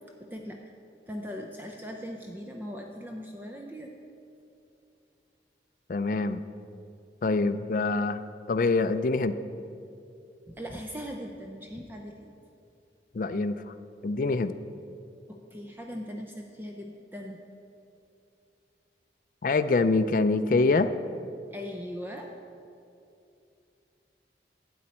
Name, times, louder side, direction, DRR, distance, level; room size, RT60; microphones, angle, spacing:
voice 1, 0.2-0.6 1.1-3.9 10.5-12.3 15.3-17.4 21.5-22.3, equal, 10° right, 2 dB, 0.5 m, -39 dB
voice 2, 5.9-6.4 7.2-8.2 8.5-9.4 13.1-13.6 14.0-14.5 19.4-20.9, left 3 dB, 50° left, 11 dB, 0.4 m, -25 dB
12.5 x 8.6 x 4.3 m, 2.6 s
head